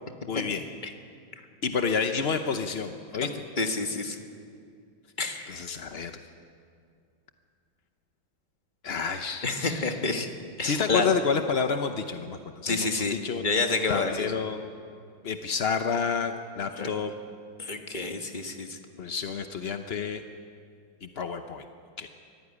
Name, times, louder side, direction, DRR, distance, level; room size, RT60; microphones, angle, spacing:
voice 1, 0.3-0.6 1.6-3.3 5.5-6.1 8.8-9.9 10.6-12.9 13.2-13.4 13.9-14.7 15.2-17.1 19.0-20.2 21.0-21.6 22.0-22.1, left 5 dB, 55° left, 7 dB, 0.7 m, -29 dB
voice 2, 3.6-4.2 5.2-5.6 9.4-10.3 10.6-11.1 12.6-14.3 16.8-16.9 17.6-18.8, left 3 dB, 25° left, 5 dB, 1.5 m, -29 dB
24.0 x 15.0 x 9.8 m, 2.4 s
omnidirectional pair, 2.3 m